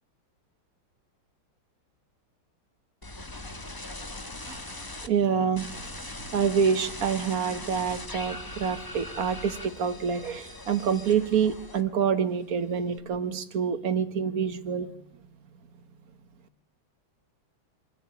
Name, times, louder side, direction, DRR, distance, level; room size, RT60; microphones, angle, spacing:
sound 1, 3.0-5.1 5.5-12.1 12.4-13.0, left 2 dB, 20° left, 0.6 m, -40 dB
voice 1, 5.0-14.9, right 7 dB, 50° right, 9 dB, 1.5 m, -27 dB
24.5 x 14.5 x 8.7 m, 0.74 s
omnidirectional pair, 2.3 m